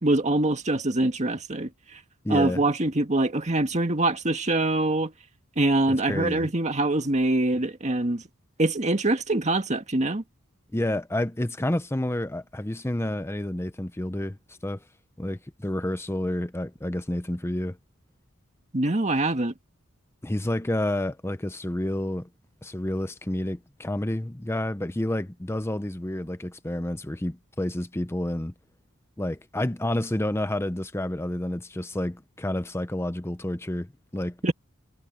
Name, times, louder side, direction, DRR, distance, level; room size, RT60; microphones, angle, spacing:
voice 1, 0.0-1.7 2.3-5.1 5.6-8.2 8.6-10.2 18.7-19.5 34.4-34.5, right 2 dB, 35° right, 1.8 m, -24 dB
voice 2, 2.2-2.7 5.9-6.5 10.7-14.4 14.6-14.8 15.2-17.8 20.2-22.3 22.6-28.5 29.2-34.5, left 1 dB, 10° left, 0.8 m, -29 dB
head